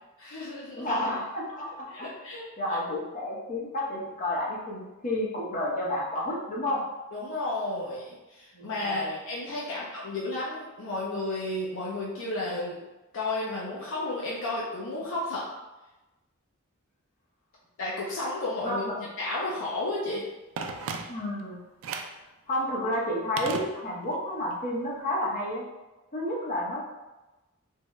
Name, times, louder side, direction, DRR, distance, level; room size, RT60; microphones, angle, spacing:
voice 1, 0.2-0.9 1.9-2.4 7.1-12.8 13.1-15.5 17.8-18.8 19.2-20.2, left 2 dB, 65° left, -5 dB, 0.6 m, -32 dB
voice 2, 0.7-2.1 2.6-6.8 8.5-9.2 18.6-19.1 21.1-21.6 22.5-25.6 26.1-26.8, left 1 dB, 35° left, -4 dB, 0.8 m, -31 dB
Telephone, 20.6-21.4 21.8-22.2 23.4-24.2 24.5-24.6, right 5 dB, 65° right, 0.3 m, -36 dB
3.5 x 2.2 x 3.0 m, 1.1 s
head